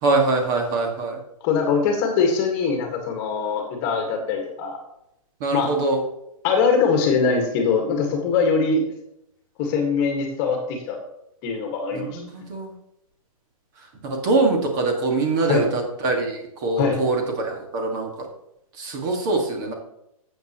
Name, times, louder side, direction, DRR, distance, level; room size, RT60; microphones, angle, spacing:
voice 1, 0.0-1.2 5.4-6.0 11.9-12.7 14.0-18.1 18.8-19.7, right 3 dB, 30° right, 2 dB, 1.9 m, -23 dB
voice 2, 1.4-4.8 5.5-5.8 6.4-8.9 9.6-11.0 11.4-12.2 15.4-15.7 16.8-17.0, left 5 dB, 25° left, 3 dB, 1.7 m, -22 dB
12.5 x 8.0 x 3.0 m, 0.81 s
hypercardioid pair, 160°, 19 cm